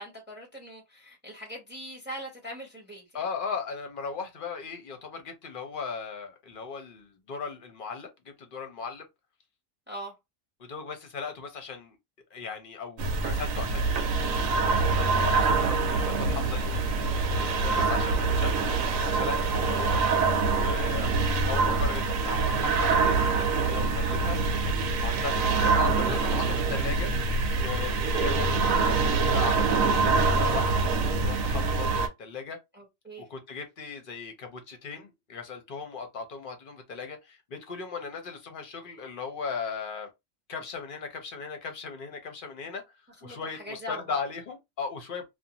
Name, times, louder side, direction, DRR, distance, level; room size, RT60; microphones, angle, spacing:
voice 1, 0.0-3.3 9.9-10.1 32.7-33.3 43.2-44.2, equal, 10° right, 0.9 m, -42 dB
voice 2, 3.1-9.0 10.6-12.0 12.3-14.0 14.5-20.0 20.5-24.4 25.0-27.1 27.6-30.8 31.2-32.6 33.3-40.1 40.5-42.8 43.2-45.3, left 5 dB, 50° left, 0.7 m, -37 dB
sound 1, 13.0-32.1, right 3 dB, 80° right, 1.0 m, -25 dB
Ambience Food Court B, 15.5-21.7, right 3 dB, 55° right, 1.0 m, -42 dB
2.5 x 2.2 x 2.8 m
omnidirectional pair, 1.4 m